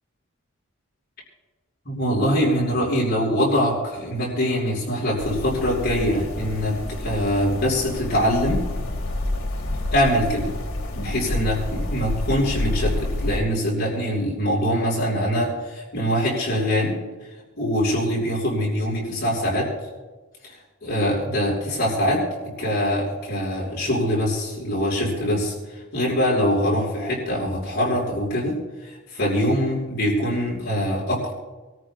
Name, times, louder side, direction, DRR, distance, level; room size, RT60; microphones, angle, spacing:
voice 1, 1.9-8.6 9.9-10.5 10.9-17.0 17.6-19.7 20.4-20.5 20.8-22.3 22.6-25.5 25.9-31.3, equal, 45° left, -5 dB, 5.5 m, -23 dB
sound 1, 5.2-13.4, left 1 dB, 80° left, 1.7 m, -29 dB
28.0 x 13.5 x 2.3 m, 1.2 s
head